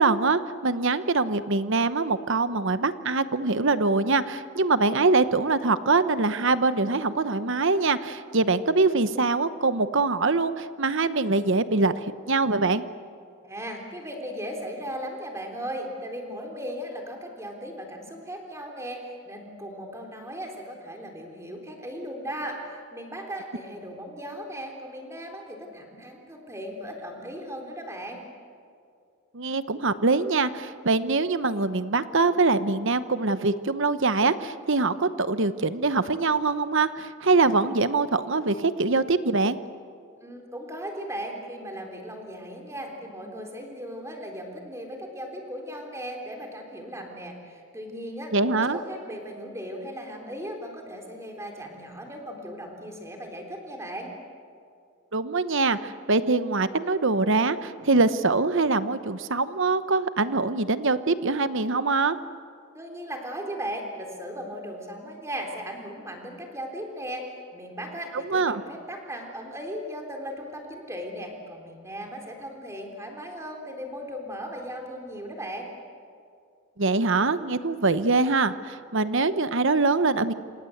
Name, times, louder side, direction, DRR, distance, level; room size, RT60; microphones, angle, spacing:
voice 1, 0.0-12.8 29.3-39.6 48.3-48.8 55.1-62.2 68.2-68.6 76.8-80.3, right 3 dB, 55° right, 13 dB, 1.0 m, -23 dB
voice 2, 13.4-28.2 40.2-54.1 62.7-75.7, equal, 15° right, 2 dB, 3.8 m, -37 dB
28.0 x 26.5 x 8.0 m, 2.4 s
head